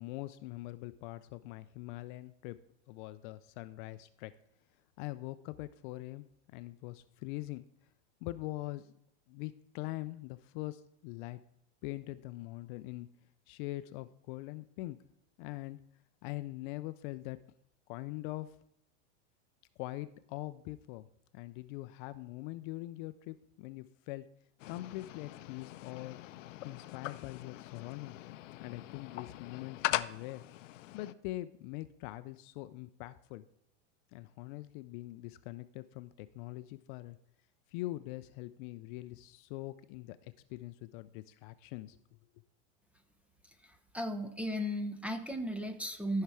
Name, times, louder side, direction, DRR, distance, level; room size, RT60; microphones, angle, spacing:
voice 1, 0.0-2.6 2.9-4.3 5.0-7.6 8.2-8.9 9.3-11.4 11.8-13.1 13.5-15.0 15.4-15.8 16.2-17.4 17.9-18.6 19.8-21.1 21.3-24.2 24.7-26.2 26.6-28.2 28.6-30.4 30.9-33.4 34.1-37.2 37.7-42.0, left 18 dB, 45° left, 13 dB, 0.4 m, -43 dB
sound 1, 24.6-31.1, left 15 dB, 85° left, 0.6 m, -41 dB
voice 2, 43.6-46.2, equal, 5° right, 8 dB, 0.5 m, -36 dB
13.5 x 5.7 x 4.7 m, 0.77 s
supercardioid pair, 140°, 37 cm